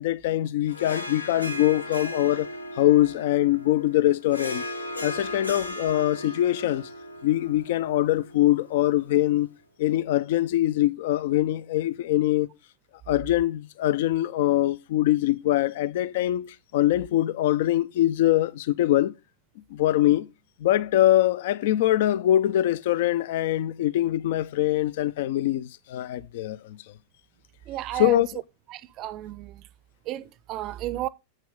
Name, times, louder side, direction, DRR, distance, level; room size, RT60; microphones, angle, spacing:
voice 1, 0.0-2.5 2.8-4.6 5.0-6.9 7.2-9.5 9.8-12.5 13.1-19.1 19.7-20.3 20.6-26.8 27.9-28.3, left 14 dB, 55° left, 0.5 m, -23 dB
Harp, 0.7-9.3, left 1 dB, 85° left, 1.0 m, -37 dB
voice 2, 27.7-28.2 28.7-29.6 30.1-31.1, right 15 dB, 35° right, 0.6 m, -32 dB
7.8 x 7.3 x 3.6 m
figure-of-eight pair, 90°, 0 cm